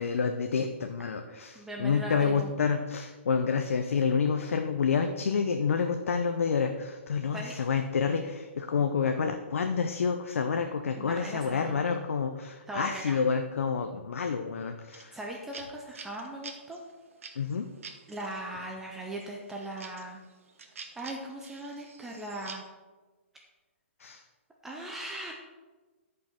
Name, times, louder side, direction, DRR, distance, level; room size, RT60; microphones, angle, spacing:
voice 1, 0.0-15.2 17.4-17.7 24.0-24.2, left 6 dB, 85° left, 5 dB, 0.7 m, -29 dB
voice 2, 1.5-2.5 7.3-7.5 11.0-11.8 12.7-13.2 15.1-16.8 18.1-20.2 21.0-22.6 24.6-25.3, right 1 dB, 5° right, -1 dB, 0.4 m, -39 dB
sound 1, 14.9-18.4 18.9-22.7, right 5 dB, 90° right, 1.2 m, -47 dB
11.5 x 5.5 x 4.3 m, 1.3 s
hypercardioid pair, 175°, 7 cm